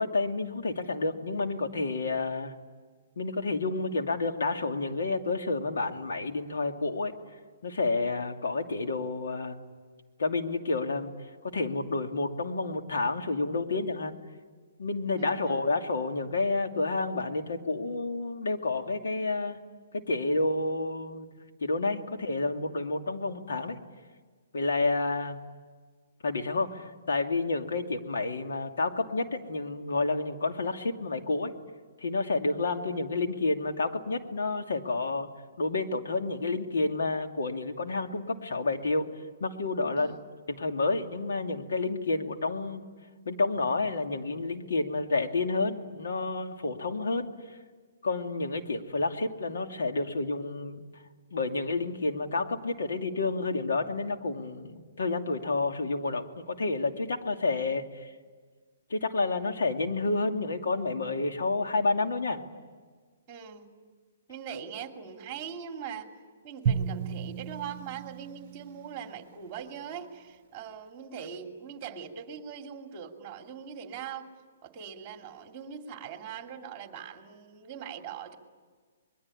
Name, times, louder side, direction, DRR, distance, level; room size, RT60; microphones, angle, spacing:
voice 1, 0.0-2.5 3.2-7.1 7.6-9.7 10.2-11.1 11.4-14.2 14.8-19.6 19.9-21.3 21.6-23.8 24.5-25.4 26.2-31.5 32.0-35.3 35.6-39.1 39.4-40.1 40.5-42.8 43.3-47.3 48.0-50.8 51.3-58.1 58.9-62.4, left 3 dB, 80° left, 4 dB, 2.6 m, -30 dB
voice 2, 15.2-15.6 40.0-40.2 63.3-63.7 64.3-66.1 66.4-74.3 74.6-78.4, right 7 dB, 20° right, 4 dB, 2.8 m, -41 dB
Drum, 66.7-69.0, right 7 dB, 35° right, 1.1 m, -33 dB
25.0 x 21.5 x 9.9 m, 1.5 s
hypercardioid pair, 160°, 0 cm